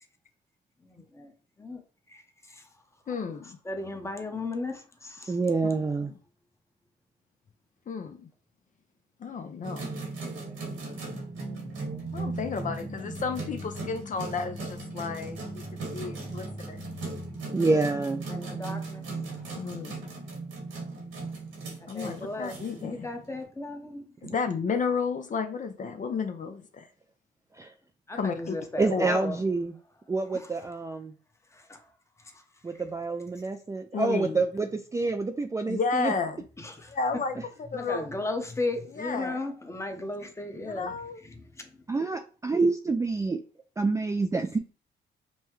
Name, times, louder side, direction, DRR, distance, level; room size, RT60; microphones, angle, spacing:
voice 1, 0.8-1.3 1.6-1.8 2.1-2.2 2.5-2.6 3.6-5.4 12.0-17.1 17.5-17.8 18.3-19.0 19.5-19.6 21.9-24.0 28.1-29.4 30.3-30.5 31.5-31.8 36.6-36.9 37.7-40.9 41.6-41.7, left 2 dB, 15° left, 0.9 m, -37 dB
voice 2, 3.1-3.6 6.1-6.2 7.9-8.3 9.2-9.9 12.1-15.6 15.9-16.8 19.5-20.0 21.9-23.1 24.2-26.9 28.1-28.6 28.9-29.2 33.9-34.4 35.7-36.4 36.9-38.1 38.9-39.4 40.6-41.2, left 5 dB, 40° left, 0.6 m, -32 dB
voice 3, 5.3-6.1 17.5-18.3 24.2-24.4 27.5-27.7 28.8-29.8 30.1-31.1 32.6-36.1 41.9-43.4 43.8-44.6, right 3 dB, 15° right, 0.3 m, -27 dB
sound 1, 9.6-23.4, right 3 dB, 80° right, 1.6 m, -38 dB
5.4 x 2.2 x 3.0 m
cardioid pair, 90°, 20 cm